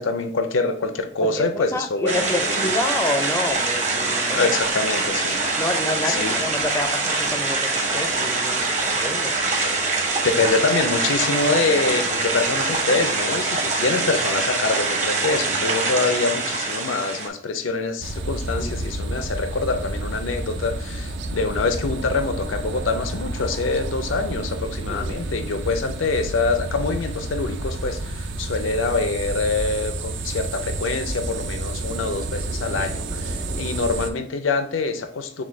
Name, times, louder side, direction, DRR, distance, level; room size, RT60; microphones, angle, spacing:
voice 1, 0.0-2.8 4.3-5.4 6.0-6.4 10.0-35.4, left 3 dB, 80° left, 7 dB, 0.5 m, -25 dB
voice 2, 1.2-4.5 5.6-9.3 18.6-18.9 24.9-25.2, left 2 dB, 15° left, 6 dB, 0.4 m, -28 dB
sound 1, 2.1-17.3, right 3 dB, 35° right, 0.8 m, -24 dB
sound 2, 18.0-34.1, right 2 dB, 65° right, 0.5 m, -30 dB
6.0 x 2.2 x 3.2 m, 0.65 s
head